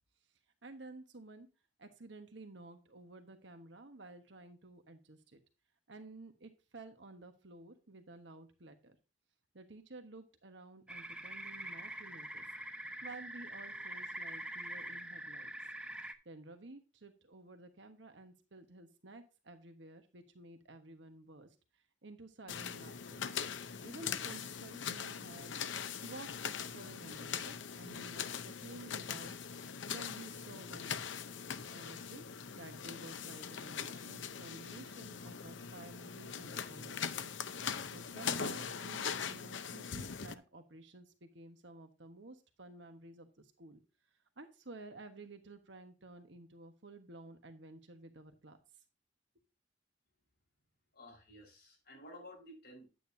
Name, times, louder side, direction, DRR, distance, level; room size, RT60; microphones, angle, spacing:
voice 1, 0.6-1.5 1.8-5.4 5.9-9.0 9.5-12.4 13.0-15.5 16.2-23.2 23.8-25.5 26.0-31.0 31.7-32.2 32.5-37.3 37.9-43.8 44.4-48.6, right 2 dB, 65° right, 7 dB, 1.3 m, -53 dB
sound 1, 10.9-16.1, right 1 dB, 5° right, 0.8 m, -44 dB
sound 2, 22.5-40.3, left 7 dB, 75° left, 0.7 m, -41 dB
voice 2, 50.9-52.9, left 1 dB, 60° left, 1 dB, 5.5 m, -53 dB
10.0 x 9.1 x 2.7 m, 0.30 s
head